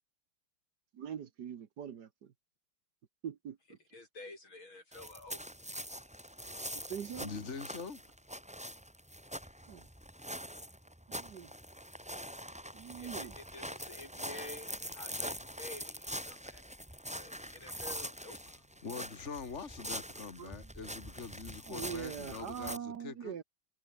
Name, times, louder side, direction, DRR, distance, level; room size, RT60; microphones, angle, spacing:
voice 1, 0.9-2.3 3.2-3.8 6.7-7.3 9.7-9.8 11.1-11.5 12.7-13.4 20.4-20.7 21.7-23.4, right 8 dB, 60° right, 1.6 m, -43 dB
voice 2, 3.9-5.4 13.0-16.6 17.1-18.4, left 2 dB, 85° left, 8.3 m, -50 dB
sound 1, 4.9-22.8, equal, 5° right, 3.8 m, -44 dB
voice 3, 7.2-8.0 17.3-17.8 18.8-23.4, left 5 dB, 35° left, 2.7 m, -44 dB
omnidirectional pair, 2.2 m